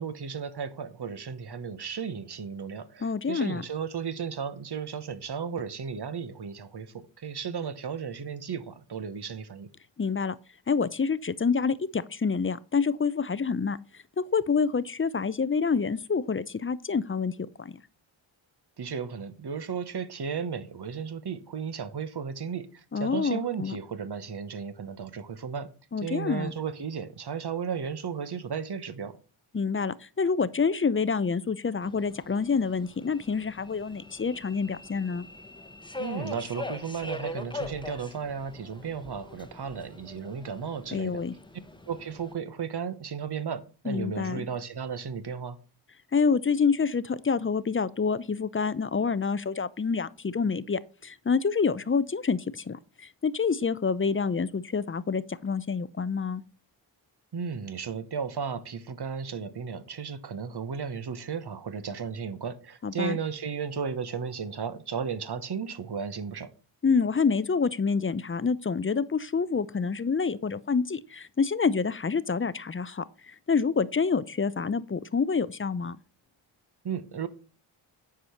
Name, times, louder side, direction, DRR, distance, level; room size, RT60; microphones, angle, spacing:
voice 1, 0.0-9.7 18.8-25.7 26.0-29.2 36.0-41.2 41.9-45.6 57.3-66.5 76.8-77.3, right 6 dB, 50° right, 1.2 m, -34 dB
voice 2, 3.0-3.6 10.0-10.4 10.7-13.8 14.2-17.8 22.9-23.8 25.9-26.5 29.5-35.3 40.9-41.3 43.9-44.5 46.1-56.4 62.8-63.2 66.8-76.0, left 5 dB, 25° left, 0.6 m, -27 dB
Subway metro underground, 31.8-42.3, left 2 dB, 10° left, 1.0 m, -42 dB
9.9 x 4.9 x 5.7 m
cardioid pair, 50°, 50 cm